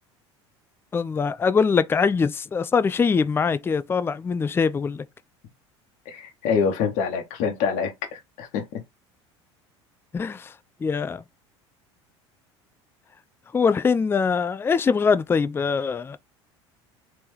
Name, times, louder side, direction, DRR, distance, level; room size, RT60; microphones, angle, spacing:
voice 1, 0.9-5.0 10.1-10.5 10.8-11.2 13.5-16.2, left 5 dB, 15° left, 0.4 m, -23 dB
voice 2, 6.0-8.8, left 6 dB, 55° left, 1.1 m, -26 dB
3.4 x 3.0 x 3.2 m
hypercardioid pair, 75°, 15 cm